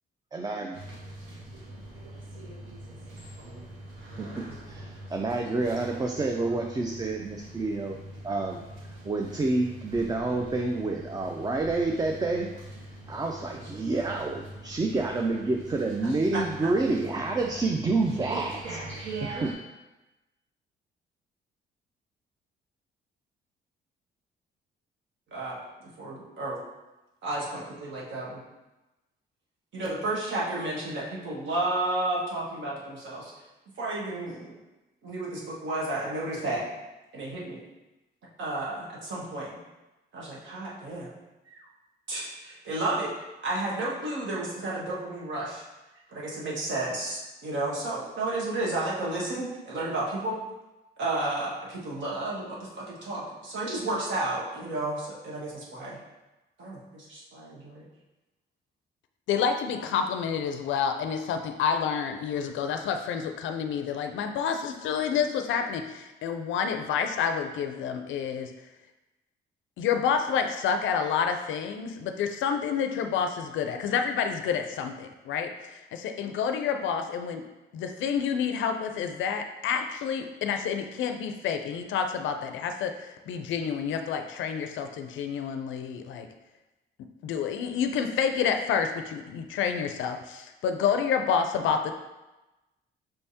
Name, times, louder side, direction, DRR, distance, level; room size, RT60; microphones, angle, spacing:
voice 1, 0.3-0.8 4.2-8.0 8.2-12.5 13.1-18.8 19.2-19.5, right 3 dB, 20° right, 2 dB, 0.4 m, -28 dB
sound 1, 0.7-19.5, right 2 dB, 85° right, 1.2 m, -43 dB
voice 2, 26.0-26.6 27.2-28.4 29.7-33.3 33.8-34.5 35.0-36.7 37.1-37.6 38.4-39.6 40.1-41.1 41.5-41.6 42.1-43.1 43.4-45.6 46.1-50.4 51.0-56.0 56.6-57.9, right 2 dB, 70° right, -5 dB, 1.5 m, -32 dB
voice 3, 59.3-68.5 69.8-75.5 75.9-77.4 77.7-82.9 83.3-86.3 87.2-91.9, left 7 dB, 75° left, 7 dB, 0.4 m, -28 dB
5.4 x 3.4 x 2.8 m, 1.0 s
cardioid pair, 90°, 20 cm